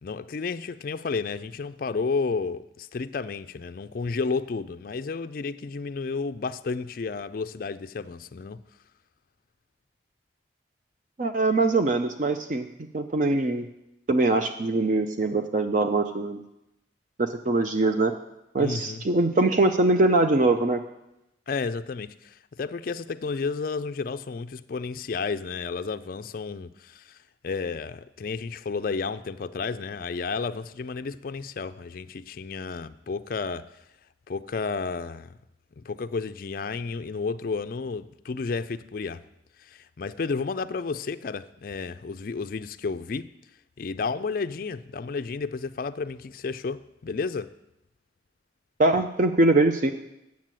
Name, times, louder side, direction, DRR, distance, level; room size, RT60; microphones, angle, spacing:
voice 1, 0.0-8.6 18.6-19.0 21.5-27.2 27.4-33.7 34.3-35.3 35.8-39.2 39.6-43.3 43.8-47.5, left 4 dB, 50° left, 0.4 m, -32 dB
voice 2, 11.2-12.7 12.9-13.6 14.1-16.4 17.2-18.1 18.5-20.8 48.8-49.9, right 2 dB, 40° right, 0.5 m, -22 dB
9.2 x 7.3 x 7.5 m
head